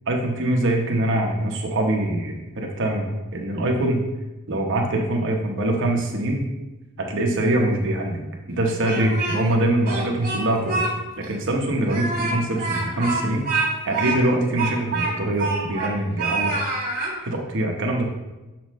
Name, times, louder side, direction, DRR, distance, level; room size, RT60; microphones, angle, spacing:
voice 1, 0.1-4.0 4.5-6.5 7.0-8.2 8.5-10.9 11.2-13.5 13.8-16.5 17.2-18.1, right 1 dB, 60° right, 1 dB, 1.0 m, -23 dB
Speech, 8.6-9.6 9.9-10.9 11.2-11.3 11.8-17.1, right 3 dB, 40° right, 1.9 m, -26 dB
7.4 x 5.9 x 3.1 m, 1.1 s
head